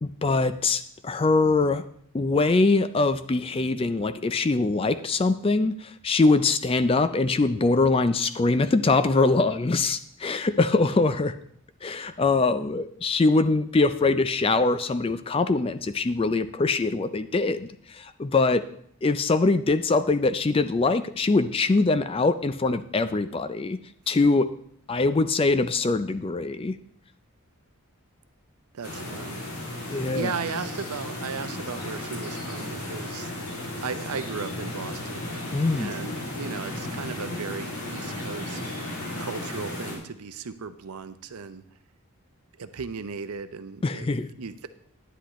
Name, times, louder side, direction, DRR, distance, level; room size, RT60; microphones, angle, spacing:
voice 1, 0.0-1.8 2.1-11.3 11.8-18.6 19.0-23.8 24.1-24.5 24.9-26.8 29.9-30.3 35.5-35.9 43.8-44.3, left 3 dB, 25° left, 12 dB, 0.3 m, -23 dB
voice 2, 28.7-29.5 30.1-33.5 33.8-35.2 35.8-38.6 39.2-41.6 42.6-44.1 44.4-44.7, right 5 dB, 85° right, 11 dB, 0.6 m, -36 dB
sound 1, 28.8-40.0, left 1 dB, 80° left, 2.6 m, -34 dB
10.0 x 10.0 x 3.1 m, 0.65 s
head